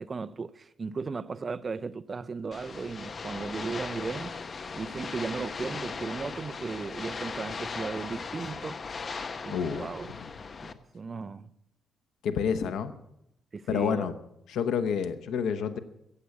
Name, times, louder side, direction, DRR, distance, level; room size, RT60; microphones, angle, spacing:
voice 1, 0.0-4.4 4.7-8.8 9.4-10.1 10.6-11.5 13.5-14.1, right 4 dB, 30° right, 0.5 m, -36 dB
sound 1, 2.5-10.7, left 4 dB, 35° left, 0.8 m, -38 dB
voice 2, 9.5-9.9 12.2-12.9 13.7-14.1 14.5-15.8, left 7 dB, 85° left, 1.0 m, -28 dB
15.5 x 8.3 x 8.5 m
cardioid pair, 140°, 0 cm